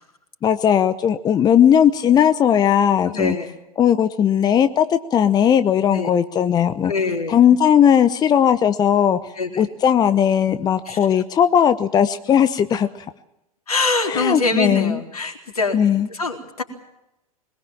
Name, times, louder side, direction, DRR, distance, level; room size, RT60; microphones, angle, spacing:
voice 1, 0.4-3.4 3.8-6.9 7.3-9.2 9.6-12.9 14.1-15.0 15.7-16.1, left 9 dB, 20° left, 12 dB, 0.9 m, -17 dB
voice 2, 3.1-3.5 5.9-6.1 6.8-7.4 9.4-9.6 10.9-11.0 13.7-15.8 16.1-16.6, left 3 dB, 75° left, 4 dB, 4.1 m, -24 dB
21.5 x 21.0 x 7.4 m, 0.87 s
figure-of-eight pair, 95°, 19 cm